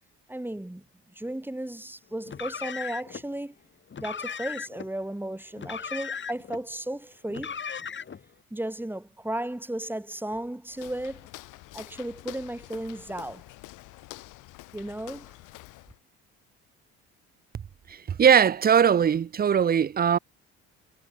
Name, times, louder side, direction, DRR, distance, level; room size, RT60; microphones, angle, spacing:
voice 1, 0.3-3.6 4.0-7.6 8.5-11.3 11.7-13.4 14.7-15.4, right 1 dB, 5° right, 7.8 m, -35 dB
Car, 2.2-3.2 3.9-4.9 5.6-6.6 7.3-8.2, left 6 dB, 40° left, 4.2 m, -36 dB
Walk footsteps, 10.7-16.0, left 20 dB, 80° left, 3.3 m, -47 dB
voice 2, 17.9-20.2, right 8 dB, 30° right, 0.6 m, -20 dB
supercardioid pair, 85°, 31 cm